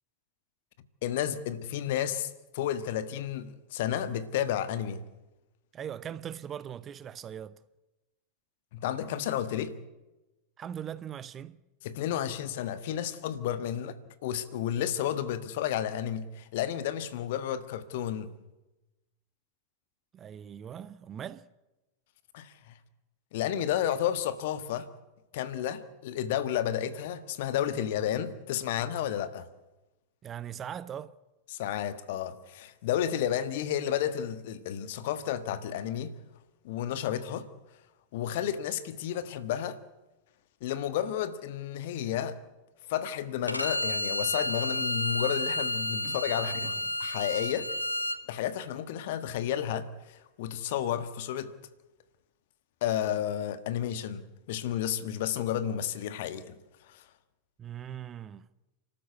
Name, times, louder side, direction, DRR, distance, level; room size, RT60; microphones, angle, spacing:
voice 1, 1.0-5.0 8.7-9.8 11.8-18.3 22.3-22.7 23.3-24.9 25.3-29.5 31.5-36.1 36.6-37.5 38.1-39.8 40.6-42.4 42.9-46.7 47.0-47.7 48.3-51.5 52.8-56.5 56.9-57.0, left 10 dB, 50° left, 1.5 m, -32 dB
voice 2, 5.7-7.6 10.6-11.6 20.1-21.5 30.2-31.1 46.0-46.9 57.6-58.5, right 9 dB, 25° right, 0.7 m, -40 dB
Bowed string instrument, 43.5-48.2, left 1 dB, 85° left, 1.1 m, -31 dB
30.0 x 13.5 x 8.1 m
figure-of-eight pair, 90°, 0 cm